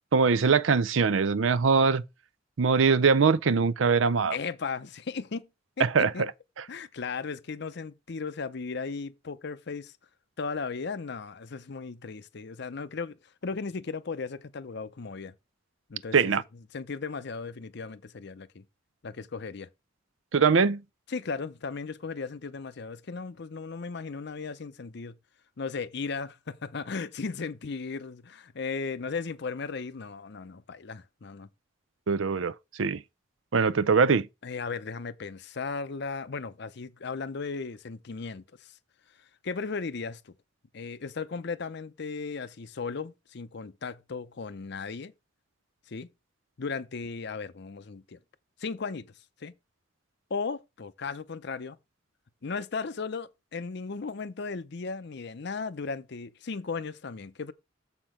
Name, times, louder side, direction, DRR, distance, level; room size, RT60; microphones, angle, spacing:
voice 1, 0.1-2.0 2.6-4.4 5.8-6.3 16.1-16.4 20.3-20.8 32.1-32.5 32.8-33.0 33.5-34.3, right 5 dB, 85° right, 0.6 m, -22 dB
voice 2, 4.3-5.5 5.8-6.3 6.7-9.9 10.4-13.2 13.4-15.3 15.9-18.6 19.0-19.7 21.1-25.2 25.6-31.5 34.4-38.4 39.4-40.3 40.7-45.1 45.9-46.1 46.6-48.2 48.6-49.1 49.4-49.5 50.3-51.8 52.4-57.5, left 4 dB, 60° left, 0.6 m, -36 dB
7.3 x 5.9 x 5.0 m
head